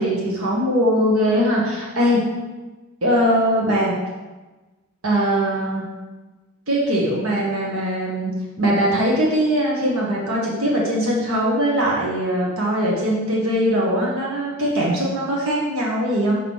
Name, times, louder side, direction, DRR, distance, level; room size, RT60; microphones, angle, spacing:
voice 1, 0.0-2.2 3.0-3.9 5.0-5.8 6.7-8.3 8.6-16.3, equal, 90° right, -4 dB, 1.6 m, -21 dB
7.0 x 3.8 x 6.3 m, 1.2 s
head